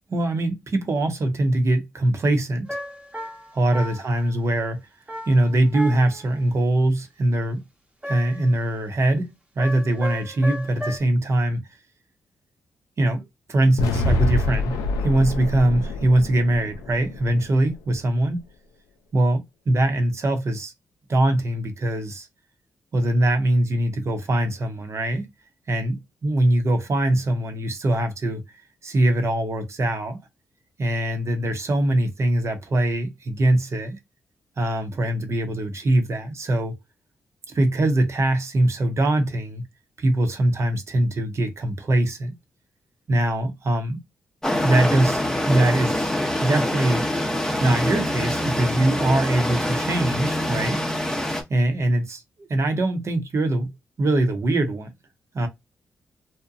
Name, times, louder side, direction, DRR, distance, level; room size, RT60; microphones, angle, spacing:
voice 1, 0.1-2.8 3.5-4.8 5.3-7.6 8.0-9.3 9.6-11.6 13.0-18.4 19.1-19.4 19.7-20.7 21.1-22.3 22.9-25.3 25.7-30.2 30.8-34.0 34.6-36.8 37.5-39.6 40.0-42.3 43.1-44.0 44.6-45.2 45.5-46.1 46.4-47.0 47.6-50.8 51.5-53.7 54.0-54.9 55.3-55.5, right 1 dB, 50° right, 0.8 m, -22 dB
sound 1, 2.7-4.3 5.1-6.3 8.0-8.6 9.6-11.0, equal, 20° right, 0.9 m, -34 dB
sound 2, 13.8-17.9, left 2 dB, 85° left, 0.4 m, -26 dB
sound 3, 44.4-51.4, left 1 dB, 10° left, 0.7 m, -25 dB
2.7 x 2.1 x 2.5 m
supercardioid pair, 45°, 6 cm